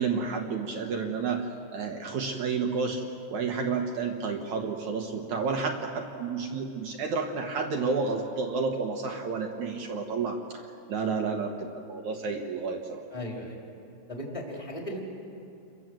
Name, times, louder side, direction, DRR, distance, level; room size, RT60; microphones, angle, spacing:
voice 1, 0.0-3.0 3.3-10.6 10.9-13.0, right 4 dB, 60° right, 3 dB, 2.3 m, -30 dB
voice 2, 13.1-13.6 14.1-15.0, left 1 dB, 10° left, -1 dB, 3.0 m, -36 dB
29.5 x 23.0 x 7.7 m, 2.6 s
omnidirectional pair, 4.8 m